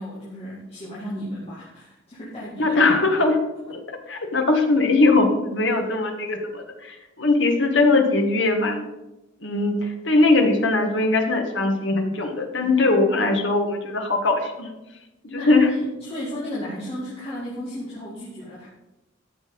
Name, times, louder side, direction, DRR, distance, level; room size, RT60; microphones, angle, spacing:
voice 1, 0.0-2.9 4.1-4.2 5.7-5.9 15.3-18.7, equal, 30° left, -8 dB, 2.4 m, -34 dB
voice 2, 2.6-3.4 3.7-3.8 4.1-8.8 9.4-14.7 15.2-15.7, left 3 dB, 60° left, 3 dB, 1.7 m, -20 dB
12.5 x 6.5 x 5.2 m, 0.99 s
head